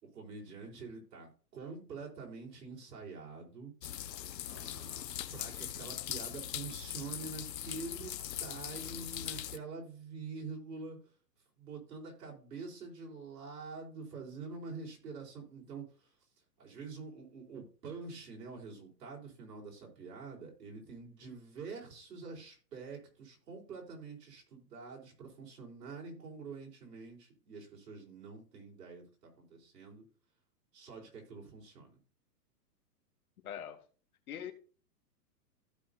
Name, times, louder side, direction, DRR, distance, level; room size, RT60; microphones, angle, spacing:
voice 1, 0.0-3.7 4.4-11.0 11.6-16.1 16.6-30.0 30.7-32.0, right 4 dB, 75° right, 4.5 m, -46 dB
sound 1, 3.8-9.6, left 11 dB, 85° left, 0.9 m, -41 dB
voice 2, 33.4-33.8 34.3-34.5, left 9 dB, 60° left, 1.8 m, -41 dB
15.5 x 5.3 x 2.8 m
hypercardioid pair, 165°, 49 cm